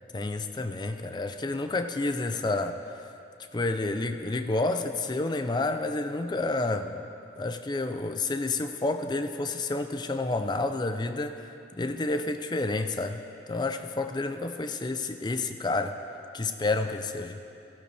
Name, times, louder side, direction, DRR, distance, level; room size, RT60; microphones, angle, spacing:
voice 1, 0.1-3.0 3.5-7.0 7.4-13.2 13.5-16.0 16.3-17.4, left 2 dB, 25° left, 8 dB, 0.4 m, -30 dB
14.5 x 12.0 x 3.3 m, 2.7 s
head